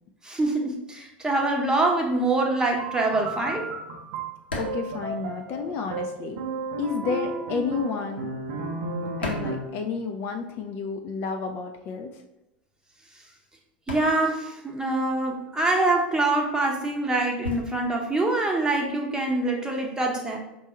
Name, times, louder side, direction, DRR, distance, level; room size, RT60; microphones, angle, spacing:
voice 1, 0.2-3.7 13.9-20.4, right 2 dB, 10° right, 1 dB, 0.8 m, -25 dB
sound 1, 2.8-9.9, right 3 dB, 65° right, 0.6 m, -33 dB
sound 2, 4.5-6.0 6.3-10.4 10.7-19.4, left 2 dB, 85° left, 0.9 m, -40 dB
voice 2, 4.6-6.4 6.8-8.3 9.2-12.2, left 5 dB, 45° left, 4 dB, 0.4 m, -31 dB
5.2 x 2.3 x 2.8 m, 0.94 s
figure-of-eight pair, 80°, 6 cm